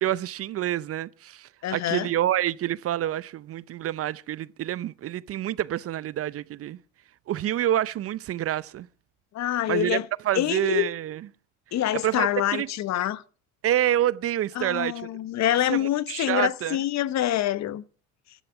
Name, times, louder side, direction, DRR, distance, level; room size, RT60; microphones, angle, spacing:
voice 1, 0.0-6.8 7.3-8.9 9.7-10.0 10.2-11.2 12.0-12.7 13.6-15.1 15.4-16.8, right 12 dB, 40° right, 0.6 m, -27 dB
voice 2, 1.6-2.1 9.3-10.1 10.3-10.9 11.7-13.2 14.6-17.8, left 12 dB, 50° left, 1.0 m, -26 dB
15.5 x 11.5 x 5.8 m
supercardioid pair, 95°, 36 cm